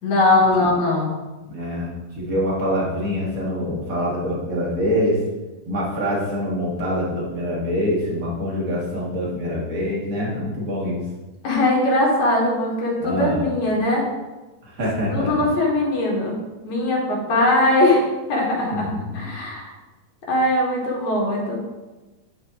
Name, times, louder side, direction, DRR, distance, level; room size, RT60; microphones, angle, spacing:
voice 1, 0.0-1.2 11.4-14.0 15.1-16.4 16.6-19.7 20.3-21.6, left 1 dB, 55° left, -4 dB, 2.7 m, -20 dB
voice 2, 1.5-5.2 5.7-11.0 13.0-13.4 14.6-15.4 18.7-19.0, equal, 75° right, -5 dB, 0.7 m, -25 dB
10.5 x 4.5 x 3.6 m, 1.1 s
omnidirectional pair, 4.2 m